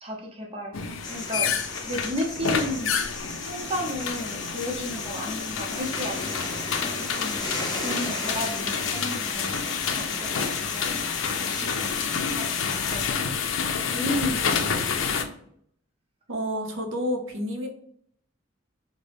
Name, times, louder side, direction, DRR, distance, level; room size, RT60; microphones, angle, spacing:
voice 1, 0.0-3.0 3.4-6.4 6.8-7.5 7.8-11.0 11.2-13.1 13.9-14.6, equal, 30° right, -1 dB, 0.9 m, -34 dB
sound 1, 0.7-15.2, left 6 dB, 80° left, 0.5 m, -29 dB
sound 2, 1.0-13.1, left 2 dB, 20° left, 0.7 m, -36 dB
voice 2, 16.3-17.7, equal, 85° right, 2 dB, 0.8 m, -29 dB
3.8 x 2.2 x 3.4 m, 0.65 s
head